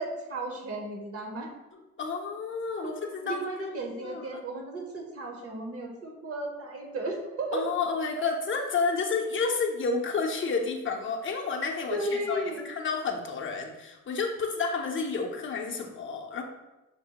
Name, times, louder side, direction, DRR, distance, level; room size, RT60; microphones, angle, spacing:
voice 1, 0.0-1.5 2.8-2.9 3.2-7.7 8.2-8.3 11.9-12.6, right 1 dB, 50° right, 2 dB, 0.8 m, -34 dB
voice 2, 2.0-3.4 4.0-4.4 7.5-16.4, left 4 dB, 40° left, 2 dB, 0.5 m, -30 dB
5.9 x 2.0 x 2.8 m, 1.1 s
cardioid pair, 90°, 30 cm